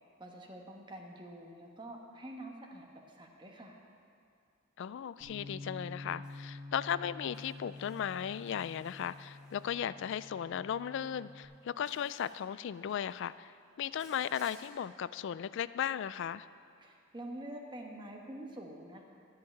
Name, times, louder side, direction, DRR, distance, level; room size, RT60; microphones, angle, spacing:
voice 1, 0.2-3.8 16.8-19.0, right 1 dB, 25° right, 1 dB, 1.2 m, -46 dB
voice 2, 4.8-13.5 13.8-16.5, left 8 dB, 60° left, 16 dB, 0.3 m, -36 dB
Bass guitar, 5.2-11.5, left 2 dB, 50° right, 2.9 m, -48 dB
Insect, 6.2-6.4 7.3-9.9 11.0-11.2 11.8-12.4 12.7-13.2 13.9-14.7, equal, 5° right, 1.3 m, -60 dB
12.5 x 5.8 x 8.5 m, 2.3 s
head